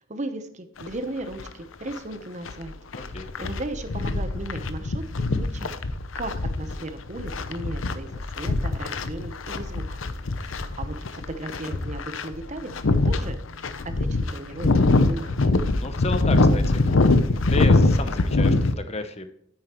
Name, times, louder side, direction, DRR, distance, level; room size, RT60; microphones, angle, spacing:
voice 1, 0.1-2.7 3.4-5.7 6.1-10.0 10.4-12.7 13.0-13.4 13.8-14.7 15.0-15.5, right 2 dB, 35° right, 9 dB, 0.8 m, -36 dB
sound 1, 0.8-0.9 1.4-1.5 1.9-18.7, left 2 dB, 65° left, 0.7 m, -23 dB
voice 2, 2.9-3.3 14.7-15.0 15.8-19.4, left 3 dB, 30° left, 9 dB, 0.8 m, -33 dB
9.4 x 8.9 x 3.0 m, 0.73 s
head